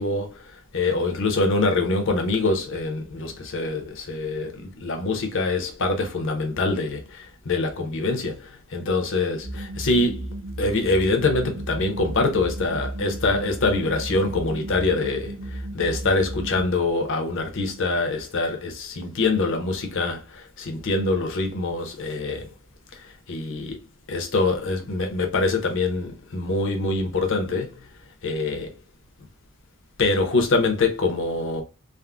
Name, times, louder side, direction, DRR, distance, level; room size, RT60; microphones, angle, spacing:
voice 1, 0.0-10.3 10.6-22.5 22.9-23.8 24.1-27.7 28.2-28.7 30.0-31.6, left 3 dB, 60° left, 0.7 m, -24 dB
sound 1, 9.4-16.6, right 1 dB, 35° right, 0.5 m, -34 dB
3.5 x 2.0 x 2.3 m
head